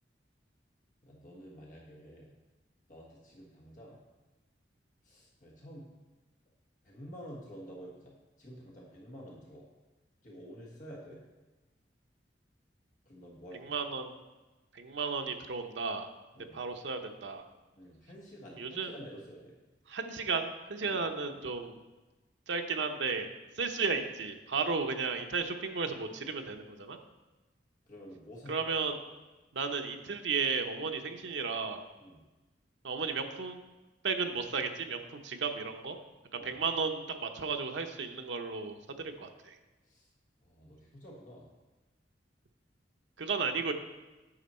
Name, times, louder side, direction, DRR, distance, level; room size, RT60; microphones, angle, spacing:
voice 1, 1.0-2.3 2.9-4.0 5.0-6.0 6.8-9.7 10.2-11.2 13.0-13.8 16.3-16.6 17.8-19.5 20.8-21.0 27.9-28.9 32.0-32.2 36.3-36.6 39.8-40.1 40.4-41.5, equal, 45° left, -3 dB, 1.5 m, -49 dB
voice 2, 13.6-14.1 14.7-16.1 16.5-17.4 18.6-18.9 19.9-21.8 22.5-27.0 28.5-29.0 29.5-31.8 32.8-33.6 34.0-36.0 36.3-39.5 43.2-43.7, right 4 dB, 85° right, 5 dB, 0.8 m, -34 dB
9.0 x 6.2 x 4.3 m, 1.1 s
head